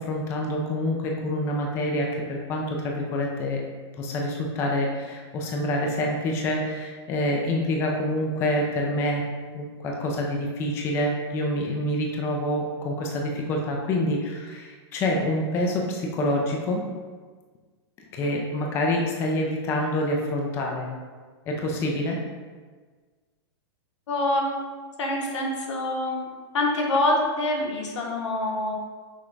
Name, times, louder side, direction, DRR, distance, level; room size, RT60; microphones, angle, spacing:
voice 1, 0.0-3.6 4.0-9.2 9.5-16.8 18.1-20.9 21.5-22.2, left 1 dB, 15° left, 0 dB, 0.4 m, -27 dB
voice 2, 24.1-24.6 25.0-26.2 26.5-28.7, left 1 dB, 90° left, 0 dB, 1.0 m, -25 dB
6.0 x 2.2 x 3.2 m, 1.5 s
supercardioid pair, 160°, 15 cm